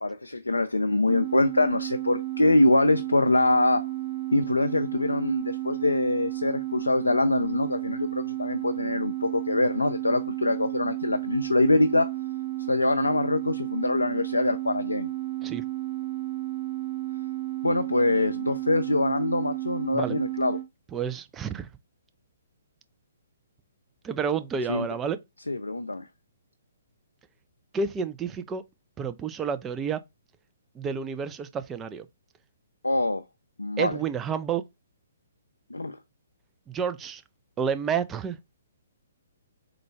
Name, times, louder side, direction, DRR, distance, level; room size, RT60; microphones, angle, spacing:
voice 1, 0.0-3.8 4.3-12.1 12.7-15.1 17.6-20.6 24.7-24.9 25.5-26.1 32.8-33.2 33.6-34.0 35.7-36.0, left 2 dB, 90° left, 0.3 m, -24 dB
sound 1, 1.1-20.7, right 16 dB, 35° right, 1.1 m, -32 dB
voice 2, 20.9-21.7 24.0-25.2 27.7-28.6 29.0-30.0 30.7-32.1 33.8-34.6 36.7-37.2 37.6-38.4, right 6 dB, 15° right, 0.4 m, -30 dB
3.8 x 2.3 x 4.3 m
figure-of-eight pair, 130°, 0 cm